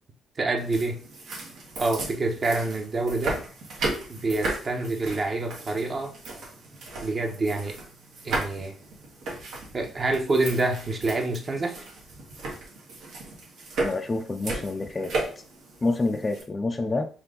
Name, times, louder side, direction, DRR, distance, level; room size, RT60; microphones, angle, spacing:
voice 1, 0.4-1.0 1.8-3.4 4.1-6.1 7.0-7.7 8.2-8.7 9.7-11.8, right 2 dB, 40° right, 3 dB, 0.9 m, -27 dB
sound 1, 0.6-16.4, right 2 dB, 75° right, 1.4 m, -35 dB
voice 2, 13.8-15.1 15.8-17.1, left 3 dB, 25° left, 5 dB, 0.4 m, -27 dB
4.4 x 2.6 x 3.7 m, 0.40 s
cardioid pair, 90°, 0 cm